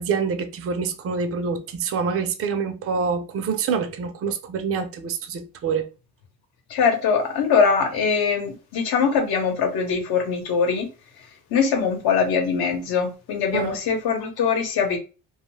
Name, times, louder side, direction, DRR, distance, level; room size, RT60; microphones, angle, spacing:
voice 1, 0.0-5.9 13.5-13.8, right 5 dB, 35° right, 0.5 m, -26 dB
voice 2, 6.7-10.9 11.5-15.0, left 6 dB, 60° left, 1.0 m, -22 dB
2.3 x 2.3 x 3.1 m
supercardioid pair, 95°, 43 cm